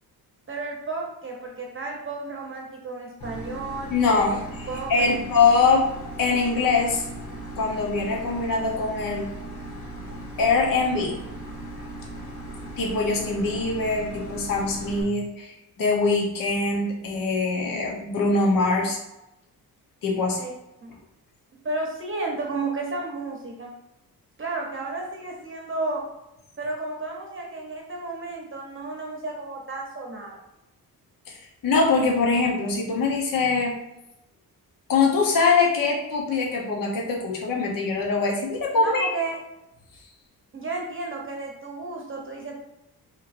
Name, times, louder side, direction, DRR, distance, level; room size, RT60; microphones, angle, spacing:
voice 1, 0.5-3.9 4.7-5.6 20.4-20.5 20.8-20.9 21.6-23.7 24.4-26.0 26.6-30.4 38.8-39.4 40.5-42.6, right 3 dB, 35° right, 0 dB, 0.8 m, -32 dB
sound 1, 3.2-15.0, right 1 dB, 80° left, 1.5 m, -38 dB
voice 2, 3.9-4.4 4.9-5.9 6.2-7.0 7.6-9.3 10.4-11.2 12.8-19.0 20.0-20.4 31.6-33.7 34.9-39.1, left 4 dB, 60° left, -2 dB, 0.9 m, -23 dB
4.3 x 3.0 x 2.6 m, 0.89 s
cardioid pair, 95°, 37 cm